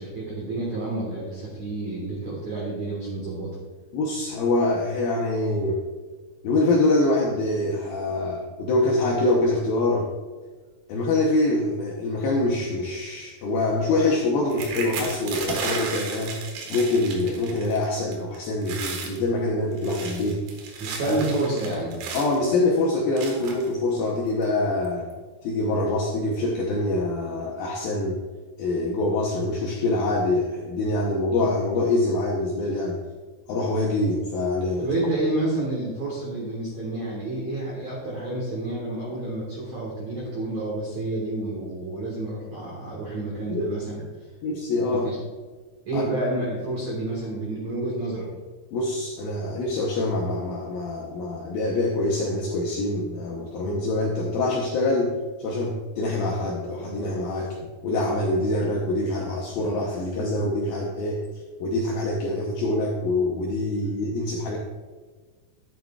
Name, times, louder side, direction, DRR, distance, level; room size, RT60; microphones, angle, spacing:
voice 1, 0.0-3.5 20.8-22.0 34.8-44.0 44.9-45.2 45.9-48.3, right 2 dB, 60° right, -4 dB, 1.9 m, -29 dB
voice 2, 3.9-5.8 6.4-10.1 10.9-16.4 16.7-20.4 21.0-21.2 22.1-25.1 25.4-28.2 28.6-33.0 33.5-34.9 43.5-43.7 44.4-45.1 45.9-46.0 48.7-57.6 57.8-61.2 61.6-64.6, left 2 dB, 85° left, -2 dB, 2.1 m, -25 dB
sound 1, 14.5-17.8 18.1-18.4 18.6-19.2 19.7-22.4 23.2-23.7 24.4-24.5 24.8-25.1, right 4 dB, 90° right, 4.0 m, -34 dB
11.5 x 9.2 x 2.3 m, 1.4 s
omnidirectional pair, 5.5 m